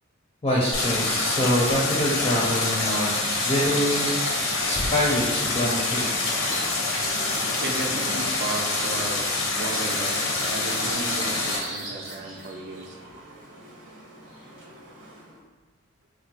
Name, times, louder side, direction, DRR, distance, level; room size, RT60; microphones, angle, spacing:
voice 1, 0.4-3.2 3.4-6.0, equal, 25° left, -5 dB, 0.4 m, -25 dB
Bird vocalization bird call bird song, 0.6-15.4, right 1 dB, 90° right, 0.8 m, -40 dB
Stream, 0.7-11.6, left 3 dB, 90° left, 0.6 m, -26 dB
sound 1, 5.9-8.3 8.6-9.3 9.7-12.5 13.0-13.1, right 2 dB, 20° right, 0.7 m, -44 dB
voice 2, 7.6-10.2 10.5-13.0, right 3 dB, 55° right, 2 dB, 0.4 m, -35 dB
3.7 x 2.0 x 2.8 m, 1.2 s
head